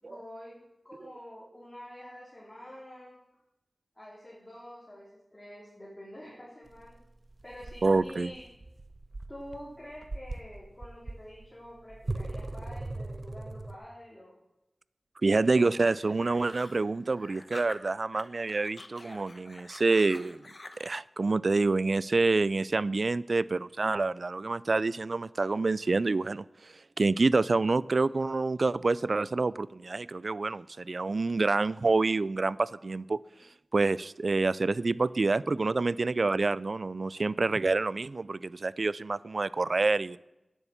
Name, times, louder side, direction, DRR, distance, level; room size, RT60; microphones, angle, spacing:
voice 1, 0.0-3.1 3.9-7.0 7.4-8.4 9.3-14.3 15.3-15.7, equal, 20° left, -6 dB, 3.3 m, -47 dB
sound 1, 6.7-13.8, right 2 dB, 45° right, 0.8 m, -40 dB
voice 2, 7.8-8.3 15.2-20.4 20.8-26.4 27.0-33.2 33.7-40.2, right 3 dB, 65° right, 20 dB, 0.3 m, -27 dB
sound 2, 15.9-18.2 18.5-21.0, left 2 dB, 50° left, 1.0 m, -48 dB
9.8 x 8.2 x 7.1 m, 0.93 s
wide cardioid pair, 65°, 0 cm